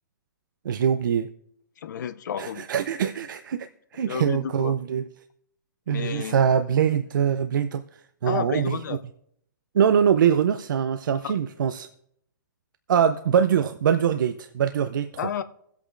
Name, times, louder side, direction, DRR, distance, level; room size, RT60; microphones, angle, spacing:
voice 1, 0.6-1.3 2.4-5.0 5.9-8.8 9.7-11.9 12.9-15.1, right 8 dB, 70° right, 0.5 m, -23 dB
voice 2, 1.8-2.6 3.0-3.1 4.1-4.7 5.9-6.4 8.3-9.0 15.2-15.4, left 8 dB, 60° left, 0.6 m, -31 dB
23.0 x 8.2 x 2.5 m
hypercardioid pair, 160°, 11 cm